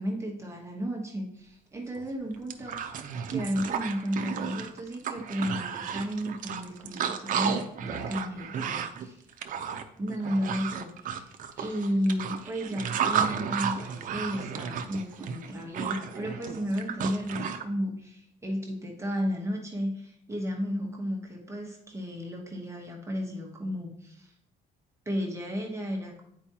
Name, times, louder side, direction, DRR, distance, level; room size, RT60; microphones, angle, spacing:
voice 1, 0.0-2.8 3.3-9.2 10.0-24.3 25.1-26.2, equal, 15° right, 0 dB, 1.0 m, -33 dB
sound 1, 2.0-2.1 2.3-17.6, right 7 dB, 50° right, 0.6 m, -33 dB
8.7 x 4.6 x 2.9 m, 0.73 s
cardioid pair, 110°, 17 cm